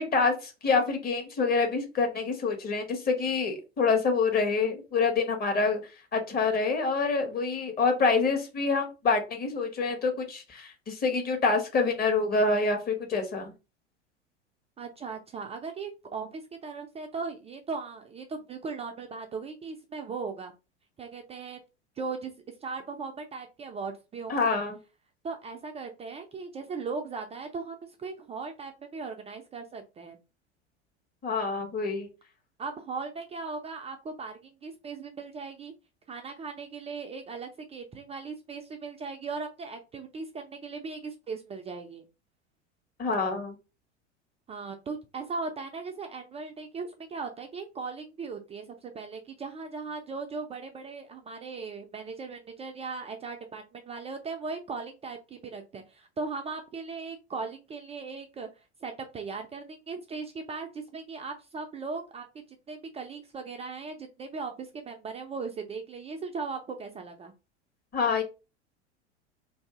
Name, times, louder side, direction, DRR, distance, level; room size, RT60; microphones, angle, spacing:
voice 1, 0.0-5.8 6.1-13.5 24.3-24.8 31.2-32.1 43.0-43.5 67.9-68.2, left 4 dB, 25° left, 3 dB, 1.2 m, -26 dB
voice 2, 14.8-20.5 21.0-21.6 22.0-22.3 22.6-24.6 25.2-30.2 32.6-35.7 36.1-42.0 44.5-58.5 58.8-62.3 62.7-67.3, right 4 dB, 20° right, 4 dB, 0.4 m, -38 dB
2.7 x 2.6 x 3.6 m, 0.29 s
figure-of-eight pair, 85°, 34 cm